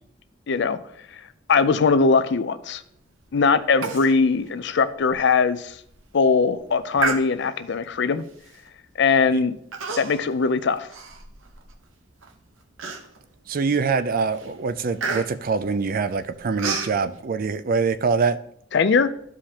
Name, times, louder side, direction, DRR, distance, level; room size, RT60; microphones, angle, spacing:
voice 1, 0.5-0.8 1.5-2.8 3.3-5.7 6.1-8.2 9.0-9.5 10.0-10.9 18.7-19.1, left 5 dB, 60° left, 13 dB, 0.5 m, -20 dB
Human voice, 3.8-4.1 4.5-4.6 5.1-5.2 5.7-6.0 7.0-7.7 8.5-8.7 9.7-10.3 10.7-11.7 12.2-12.3 12.8-13.4 13.8-14.1 14.3-17.0, right 4 dB, 85° right, 1.0 m, -30 dB
voice 2, 13.5-18.4, right 5 dB, 45° right, 11 dB, 0.4 m, -24 dB
13.0 x 4.9 x 2.9 m, 0.69 s
head